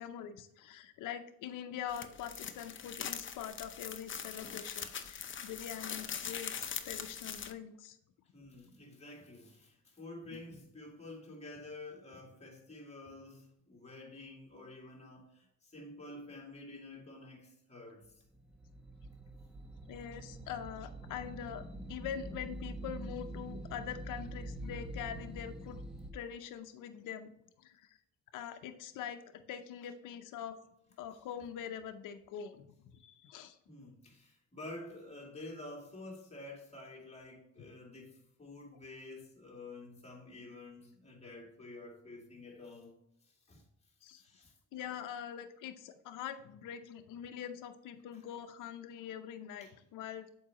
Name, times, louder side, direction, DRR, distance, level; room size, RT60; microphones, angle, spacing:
voice 1, 0.0-8.0 19.9-21.6 21.9-25.8 26.1-27.3 27.6-27.9 28.3-30.6 31.0-32.7 33.0-33.6 44.0-44.2 44.7-50.3, left 9 dB, 80° left, 0.7 m, -44 dB
Aluminum Foil Crinkle, 1.9-7.5, left 7 dB, 40° left, 0.7 m, -42 dB
voice 2, 8.3-18.2 33.7-43.0 43.2-43.6 44.2-44.5 48.1-48.2 49.6-49.7, left 2 dB, 20° left, 2.5 m, -49 dB
sound 1, 18.4-26.1, right 1 dB, ahead, 0.9 m, -45 dB
7.4 x 4.7 x 2.9 m
cardioid pair, 85°, 31 cm